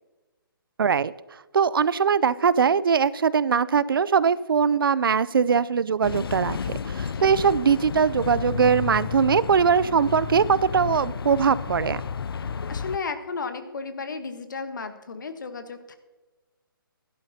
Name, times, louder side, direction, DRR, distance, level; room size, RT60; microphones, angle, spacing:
voice 1, 0.8-1.1 1.5-12.0, right 6 dB, 70° right, 18 dB, 0.4 m, -21 dB
sound 1, 6.0-13.0, left 6 dB, 75° left, 0.4 m, -32 dB
voice 2, 12.7-16.0, left 4 dB, 55° left, 9 dB, 1.1 m, -34 dB
16.0 x 11.5 x 2.8 m, 1.2 s
hypercardioid pair, 170°, 12 cm